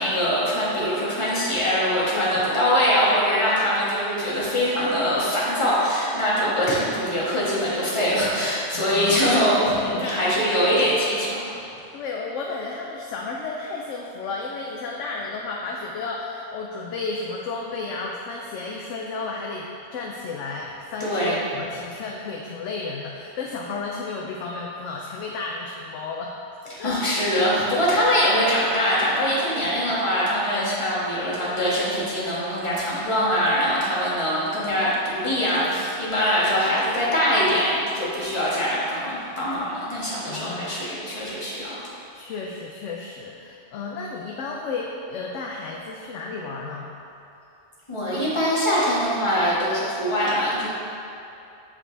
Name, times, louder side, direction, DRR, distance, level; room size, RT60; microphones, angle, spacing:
voice 1, 0.0-11.5 21.0-21.4 26.7-41.8 47.9-50.7, equal, 25° left, -8 dB, 1.5 m, -23 dB
voice 2, 2.1-2.5 8.7-9.3 9.9-10.6 11.9-26.4 26.8-27.0 36.5-36.7 40.3-40.8 42.1-46.9, left 4 dB, 85° left, -1 dB, 0.9 m, -33 dB
7.2 x 5.1 x 3.3 m, 2.7 s
omnidirectional pair, 1.2 m